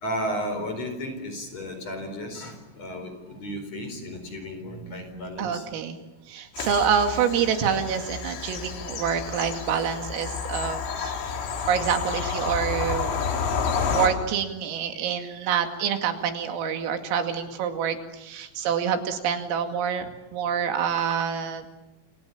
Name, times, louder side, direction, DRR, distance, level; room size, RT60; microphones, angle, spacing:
voice 1, 0.0-5.6, equal, 35° left, 7 dB, 5.0 m, -33 dB
voice 2, 5.4-6.0 6.3-11.1 11.7-13.1 13.9-21.7, right 7 dB, 85° right, 5 dB, 5.0 m, -27 dB
Bird vocalization bird call bird song / Train, 6.6-14.1, left 6 dB, 85° left, 6.0 m, -30 dB
28.5 x 28.0 x 7.3 m, 0.98 s
omnidirectional pair, 5.9 m